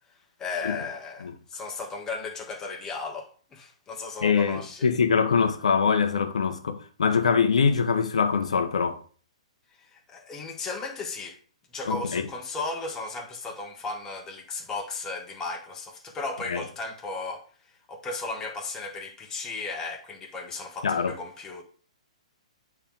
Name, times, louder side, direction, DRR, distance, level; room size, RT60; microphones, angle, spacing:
voice 1, 0.4-4.9 9.9-11.4 11.7-17.4 17.9-21.6, left 3 dB, 15° left, 1.4 m, -35 dB
voice 2, 4.2-9.0 11.8-12.2 16.5-16.6 20.8-21.2, left 6 dB, 70° left, 0.9 m, -23 dB
8.6 x 3.5 x 3.6 m
figure-of-eight pair, 120°, 4 cm